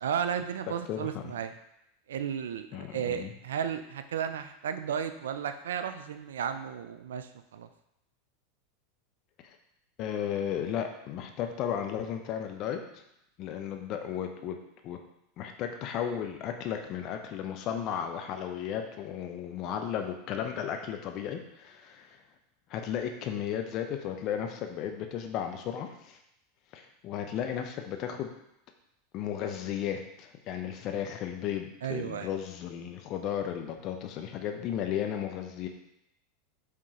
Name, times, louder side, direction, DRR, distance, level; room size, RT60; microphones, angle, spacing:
voice 1, 0.0-1.5 2.1-7.7 31.8-32.3, right 8 dB, 80° right, 9 dB, 0.3 m, -34 dB
voice 2, 0.9-1.3 2.7-3.3 10.0-12.8 13.4-14.6 14.8-15.0 15.4-22.2 22.7-26.2 26.7-28.3 29.1-35.7, left 9 dB, 50° left, 5 dB, 0.6 m, -34 dB
4.8 x 3.5 x 2.9 m, 0.80 s
hypercardioid pair, 95°, 0 cm